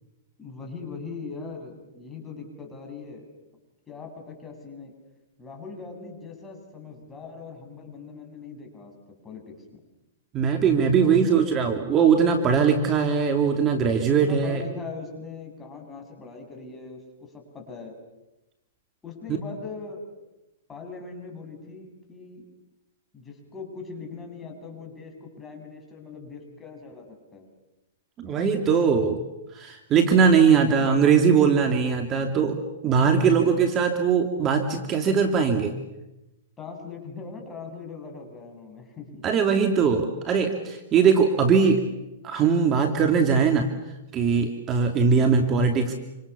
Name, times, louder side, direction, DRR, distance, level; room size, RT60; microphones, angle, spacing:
voice 1, 0.4-3.2 3.9-4.9 5.4-9.6 10.8-11.4 14.0-18.0 19.0-20.0 20.7-22.5 23.1-27.5 30.6-30.9 33.1-33.5 36.6-39.2, left 4 dB, 15° left, 2 dB, 7.9 m, -40 dB
voice 2, 10.3-14.6 28.2-29.2 29.5-35.7 39.2-41.8 42.2-43.7 44.1-46.0, right 6 dB, 30° right, 5 dB, 2.7 m, -21 dB
27.5 x 27.0 x 7.1 m, 0.99 s
hypercardioid pair, 115°, 0 cm